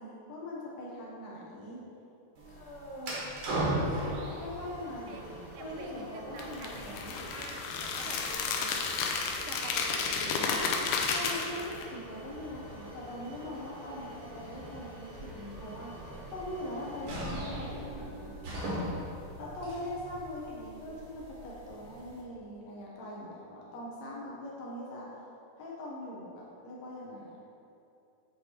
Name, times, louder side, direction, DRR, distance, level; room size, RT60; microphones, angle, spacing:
voice 1, 0.0-1.8 2.5-3.2 4.4-5.2 5.6-7.1 11.0-16.0 16.3-18.4 19.4-25.1 25.6-27.4, left 1 dB, 70° left, -4 dB, 1.8 m, -41 dB
sound 1, 2.3-22.2, right 1 dB, 55° right, 1.6 m, -40 dB
voice 2, 2.4-2.9 5.1-5.2 5.5-7.0 7.3-8.8 9.5-10.9, right 3 dB, 85° right, 2 dB, 2.1 m, -46 dB
sound 2, 6.4-11.8, left 5 dB, 90° left, 2.2 m, -32 dB
7.8 x 3.1 x 4.2 m, 2.7 s
omnidirectional pair, 3.6 m